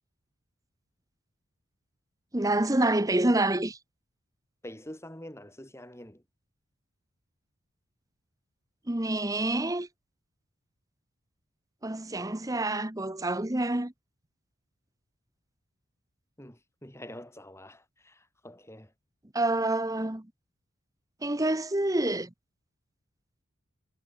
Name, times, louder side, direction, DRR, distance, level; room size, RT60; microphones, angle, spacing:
voice 1, 2.3-3.8 8.9-9.9 11.8-13.9 19.3-20.3 21.2-22.3, right 2 dB, 15° right, 0.9 m, -27 dB
voice 2, 4.6-6.2 16.4-18.9, left 1 dB, 10° left, 5.1 m, -46 dB
head